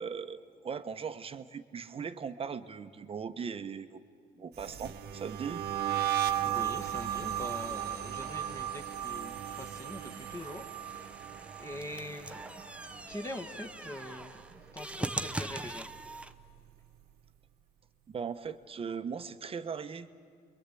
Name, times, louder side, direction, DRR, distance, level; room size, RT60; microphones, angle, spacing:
voice 1, 0.0-4.0 4.4-5.6 18.1-20.1, right 6 dB, 35° right, 10 dB, 1.1 m, -39 dB
sound 1, 4.6-13.7 14.0-14.4 14.8-16.3, right 11 dB, 70° right, 1.2 m, -36 dB
voice 2, 6.4-11.2 11.6-12.4 13.0-14.4 14.7-15.9, left 1 dB, 15° left, 3 dB, 1.6 m, -43 dB
cd in the computer, 6.8-16.3, right 2 dB, 5° right, 0.8 m, -43 dB
29.0 x 22.5 x 8.4 m, 2.2 s
cardioid pair, 110°, 17 cm